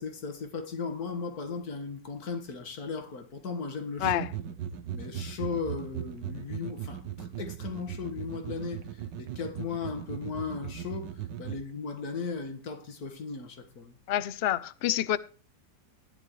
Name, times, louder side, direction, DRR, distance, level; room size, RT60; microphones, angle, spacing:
voice 1, 0.0-4.2 4.9-11.1 11.4-14.0, left 5 dB, 60° left, 2.0 m, -36 dB
sound 1, 4.0-11.6, right 9 dB, 90° right, 1.5 m, -38 dB
voice 2, 14.1-15.2, left 12 dB, 75° left, 0.5 m, -27 dB
13.5 x 10.5 x 3.1 m
omnidirectional pair, 1.9 m